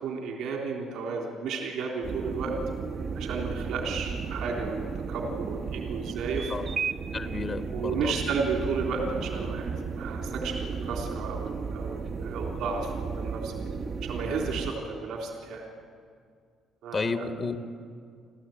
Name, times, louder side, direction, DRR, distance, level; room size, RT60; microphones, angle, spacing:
voice 1, 0.0-2.5 3.2-6.5 7.7-13.5 14.0-15.6 16.8-17.3, right 4 dB, 80° right, 1 dB, 3.6 m, -33 dB
sound 1, 2.0-14.7, right 5 dB, 50° right, 1.1 m, -34 dB
voice 2, 6.5-6.8 7.1-8.2 16.9-17.6, left 4 dB, 35° left, 7 dB, 1.5 m, -32 dB
30.0 x 13.0 x 9.3 m, 2.1 s
cardioid pair, 95°, 0 cm